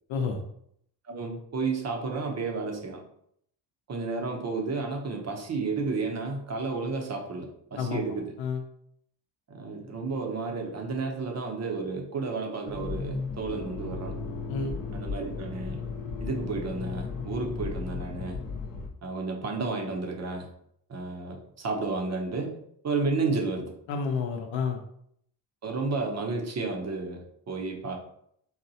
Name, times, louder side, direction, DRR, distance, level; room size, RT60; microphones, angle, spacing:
voice 1, 0.1-0.4 7.8-8.0 8.4-8.6 14.5-14.7 23.9-24.8, left 5 dB, 90° left, 3 dB, 0.7 m, -29 dB
voice 2, 1.1-3.0 3.9-8.3 9.5-14.1 14.9-15.8 16.2-18.4 19.0-20.5 20.9-22.6 22.8-23.7 25.6-28.0, right 3 dB, 40° right, 3 dB, 0.7 m, -32 dB
Accelerating revving vroom, 12.7-18.9, left 4 dB, 50° left, 0.7 m, -35 dB
4.0 x 2.1 x 2.7 m, 0.69 s
cardioid pair, 95°, 44 cm